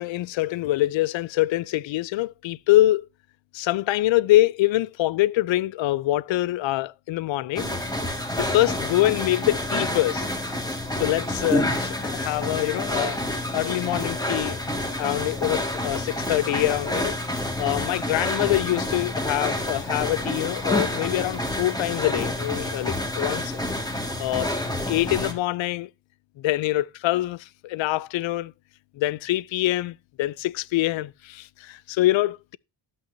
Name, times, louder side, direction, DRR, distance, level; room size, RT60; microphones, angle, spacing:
voice 1, 0.0-3.1 3.5-7.7 8.4-10.3 11.0-13.2 13.5-14.6 15.0-17.2 17.6-23.6 24.2-24.5 24.9-25.9 26.4-28.5 29.0-32.6, left 16 dB, 85° left, 0.5 m, -24 dB
sound 1, 7.6-25.3, left 1 dB, 10° left, 2.0 m, -28 dB
13.0 x 8.7 x 2.7 m
wide cardioid pair, 140°, 45 cm